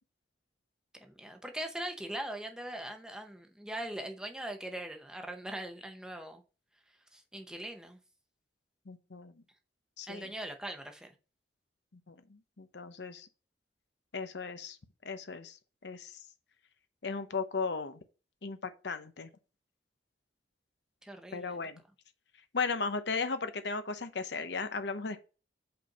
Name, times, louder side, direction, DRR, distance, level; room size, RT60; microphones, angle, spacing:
voice 1, 1.0-6.4 7.1-8.0 10.1-11.2 21.0-21.7, right 1 dB, 5° right, 0.8 m, -41 dB
voice 2, 8.9-9.3 10.0-10.3 12.1-13.3 14.1-14.8 15.0-15.6 15.8-16.2 17.0-18.0 18.4-19.3 21.3-21.8 22.5-25.2, left 4 dB, 75° left, 0.8 m, -36 dB
5.2 x 4.4 x 5.3 m
head